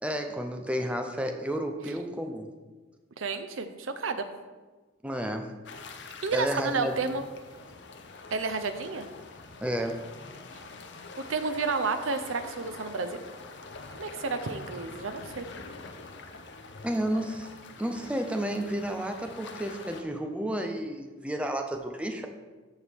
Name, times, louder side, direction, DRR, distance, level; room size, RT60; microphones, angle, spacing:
voice 1, 0.0-2.5 5.0-5.5 6.3-7.0 9.6-10.0 16.8-17.5 17.8-22.3, right 1 dB, 5° right, 4 dB, 0.6 m, -31 dB
voice 2, 3.2-4.3 6.2-7.2 8.3-9.1 11.3-13.2 14.0-15.5, right 4 dB, 90° right, 9 dB, 0.7 m, -31 dB
sound 1, 5.6-20.0, left 3 dB, 60° left, 0.6 m, -45 dB
13.5 x 4.6 x 3.5 m, 1.3 s
head